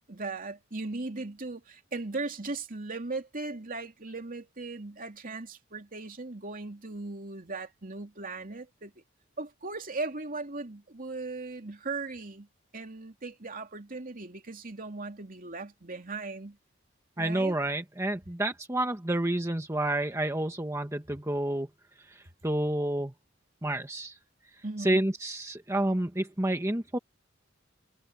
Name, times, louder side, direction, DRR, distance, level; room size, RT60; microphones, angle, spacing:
voice 1, 0.1-8.9 9.4-12.5 12.7-16.6 17.2-17.6 24.6-25.1, right 3 dB, 45° right, 2.8 m, -38 dB
voice 2, 17.2-21.7 22.4-23.1 23.6-24.2 24.8-27.0, right 1 dB, 15° right, 1.4 m, -29 dB
head